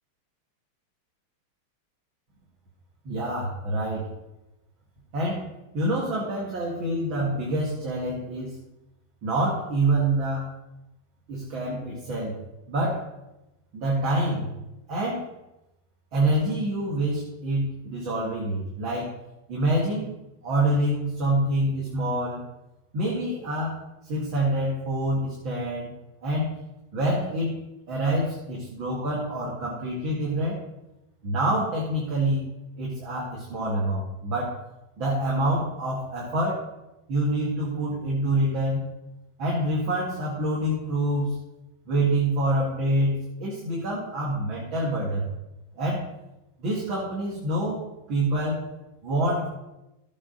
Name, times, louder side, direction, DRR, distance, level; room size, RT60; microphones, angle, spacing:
voice 1, 3.0-4.1 5.1-5.5 5.7-8.6 9.2-10.5 11.3-12.4 12.7-13.1 13.7-14.5 14.9-15.3 16.1-19.1 19.5-20.1 20.4-22.4 22.9-25.9 26.2-26.5 26.9-27.6 27.9-30.6 31.2-32.4 32.8-34.6 35.0-36.7 37.1-38.8 39.4-41.4 41.9-45.2 45.8-46.1 46.6-48.7 49.0-49.5, right 1 dB, 65° right, -4 dB, 2.9 m, -26 dB
13.5 x 8.7 x 4.0 m, 0.94 s
omnidirectional pair, 2.4 m